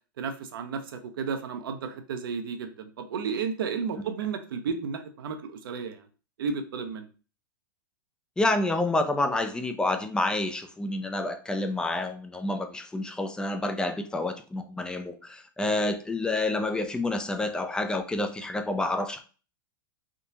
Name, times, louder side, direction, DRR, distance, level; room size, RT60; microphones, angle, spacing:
voice 1, 0.2-6.1 6.4-7.1, right 5 dB, 80° right, 7 dB, 0.7 m, -33 dB
voice 2, 8.4-19.2, left 2 dB, 5° left, 8 dB, 0.3 m, -28 dB
3.6 x 2.8 x 2.7 m, 0.35 s
hypercardioid pair, 125°, 12 cm